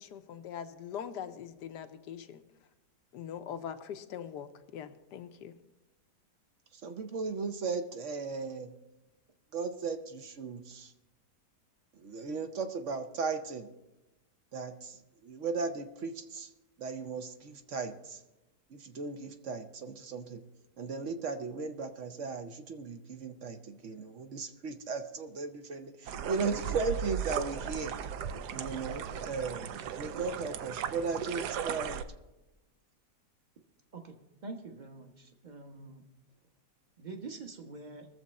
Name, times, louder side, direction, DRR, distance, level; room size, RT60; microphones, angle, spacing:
voice 1, 0.0-2.4 3.1-5.5, left 8 dB, 75° left, 9 dB, 1.4 m, -42 dB
voice 2, 6.8-8.7 9.5-10.9 12.0-13.7 14.5-16.5 16.8-18.2 18.7-20.4 20.8-27.9 28.5-32.0, right 4 dB, 55° right, 8 dB, 0.9 m, -36 dB
sound 1, 26.1-32.0, right 8 dB, 75° right, 1.2 m, -37 dB
voice 3, 34.4-36.0 37.0-38.1, right 3 dB, 30° right, 5 dB, 1.0 m, -45 dB
21.0 x 7.4 x 4.2 m, 1.0 s
omnidirectional pair, 1.9 m